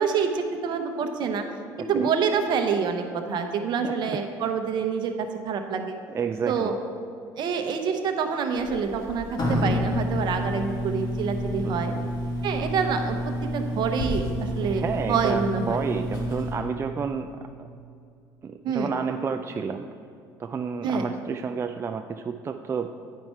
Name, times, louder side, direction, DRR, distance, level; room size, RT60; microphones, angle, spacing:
voice 1, 0.0-1.4 1.8-6.0 6.5-6.7 7.4-11.9 12.4-15.8 18.6-18.9 20.8-21.1, right 6 dB, 55° right, 5 dB, 0.9 m, -27 dB
voice 2, 1.8-2.1 3.8-4.2 6.1-6.7 11.6-12.1 14.6-17.3 18.4-19.9 20.4-22.9, right 6 dB, 30° right, 6 dB, 0.3 m, -30 dB
sound 1, 8.5-16.5, left 1 dB, 50° left, 1.8 m, -29 dB
9.4 x 5.6 x 4.5 m, 2.5 s
supercardioid pair, 80°, 9 cm